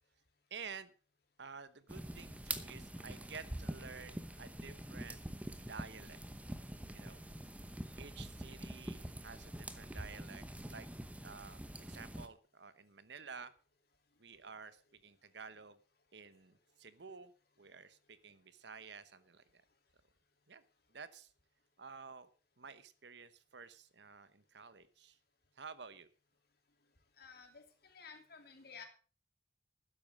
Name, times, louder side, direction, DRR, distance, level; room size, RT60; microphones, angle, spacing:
voice 1, 0.5-0.9 1.4-5.2 5.7-6.2 6.9-7.2 8.0-10.4 10.7-10.9 11.2-11.6 11.9-13.5 14.2-15.8 16.1-17.3 17.6-19.4 20.5-20.6 20.9-21.3 21.8-22.3 22.6-25.2 25.6-26.1, right 5 dB, 65° right, 14 dB, 1.0 m, -51 dB
sound 1, 1.9-12.3, right 1 dB, 5° right, 0.8 m, -45 dB
voice 2, 27.2-28.8, left 5 dB, 55° left, 5 dB, 2.9 m, -54 dB
12.5 x 10.0 x 5.3 m, 0.39 s
head